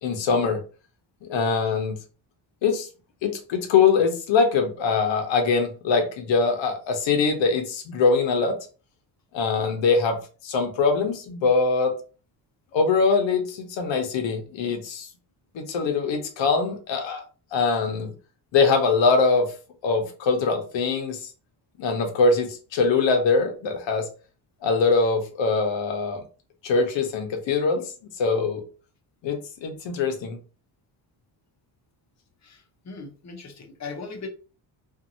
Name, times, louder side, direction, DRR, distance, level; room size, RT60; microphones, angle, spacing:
voice 1, 0.0-0.6 1.2-2.0 2.6-2.9 3.2-8.6 9.3-10.2 10.4-11.9 12.7-15.1 15.5-17.2 17.5-18.1 18.5-19.5 19.8-21.2 21.8-24.1 24.6-26.2 26.6-27.9 28.2-28.6 29.2-30.4, left 4 dB, 70° left, 4 dB, 0.9 m, -22 dB
voice 2, 32.4-34.3, left 4 dB, 35° left, 3 dB, 0.8 m, -39 dB
2.6 x 2.6 x 2.6 m, 0.36 s
cardioid pair, 95°, 46 cm